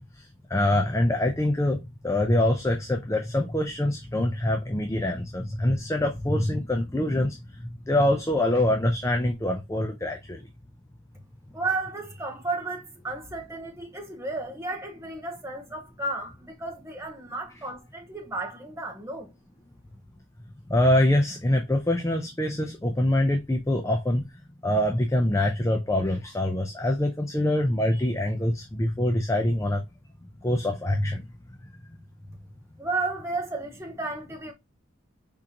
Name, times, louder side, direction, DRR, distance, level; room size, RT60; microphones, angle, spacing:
voice 1, 0.0-10.4 20.7-24.3 24.6-29.8 30.4-31.3, left 1 dB, 15° left, 0.4 m, -25 dB
voice 2, 11.5-19.3 32.8-34.5, right 3 dB, 15° right, 0.9 m, -33 dB
4.9 x 3.7 x 2.8 m
head